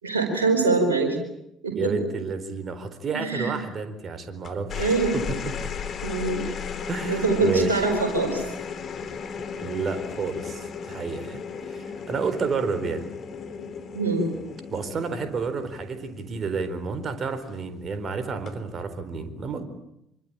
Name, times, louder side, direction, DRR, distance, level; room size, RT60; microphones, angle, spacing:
voice 1, 0.0-1.2 1.6-1.9 3.1-3.5 4.7-5.2 6.0-6.4 7.0-8.4 13.9-14.3, right 3 dB, 80° right, 2 dB, 4.5 m, -23 dB
voice 2, 1.7-5.5 6.4-6.5 6.9-7.8 9.6-13.1 14.7-19.6, right 5 dB, 40° right, 11 dB, 4.2 m, -30 dB
sound 1, 4.4-17.1 18.3-18.7, left 6 dB, 45° left, 3.4 m, -35 dB
25.5 x 24.5 x 8.9 m, 0.80 s
figure-of-eight pair, 55°, 0 cm